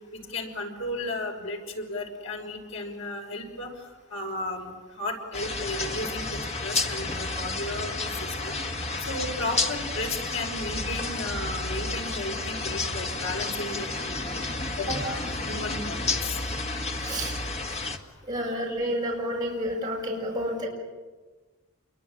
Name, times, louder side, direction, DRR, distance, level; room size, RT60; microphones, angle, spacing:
voice 1, 0.3-3.7 4.1-4.7 5.0-7.9 8.2-8.6 9.1-14.4 14.8-16.3, left 2 dB, 65° left, 1 dB, 6.1 m, -34 dB
sound 1, 5.3-18.0, left 3 dB, 30° left, 1.8 m, -31 dB
voice 2, 17.0-17.3 18.3-20.7, equal, 20° right, -3 dB, 6.6 m, -30 dB
28.0 x 23.0 x 9.0 m, 1.3 s
head